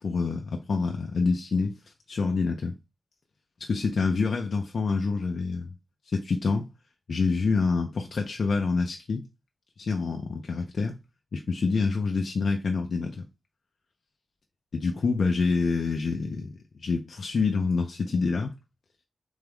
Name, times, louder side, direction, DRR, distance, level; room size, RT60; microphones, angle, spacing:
voice 1, 0.0-1.8 2.1-2.7 3.6-5.7 6.1-6.6 7.1-9.2 9.8-11.0 11.3-13.1 14.7-16.5 16.8-18.5, left 4 dB, 75° left, 0.5 m, -27 dB
3.5 x 3.5 x 3.4 m
wide cardioid pair, 100°, 0 cm